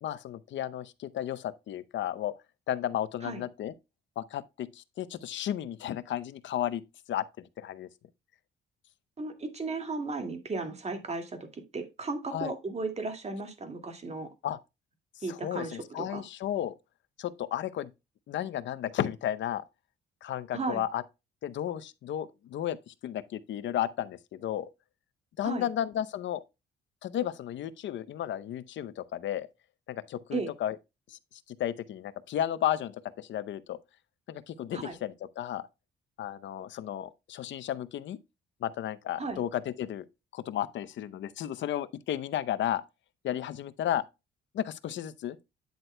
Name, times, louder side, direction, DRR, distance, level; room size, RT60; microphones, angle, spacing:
voice 1, 0.0-2.3 2.7-3.7 4.2-6.8 7.1-7.9 12.3-12.5 14.4-14.6 15.3-16.7 17.2-17.9 18.3-19.6 20.2-21.0 21.4-24.7 25.4-26.4 27.0-29.5 29.9-30.8 31.1-31.2 31.5-33.8 34.3-35.6 36.2-38.2 38.6-40.0 40.3-42.8 43.2-44.0 44.5-45.4, left 11 dB, 70° left, 0.7 m, -33 dB
voice 2, 9.2-14.3 15.2-16.2 20.5-20.8 25.4-25.7 30.3-30.5 34.7-35.0 39.2-39.4, right 3 dB, 35° right, 2.1 m, -35 dB
9.5 x 7.8 x 2.2 m
cardioid pair, 90°, 20 cm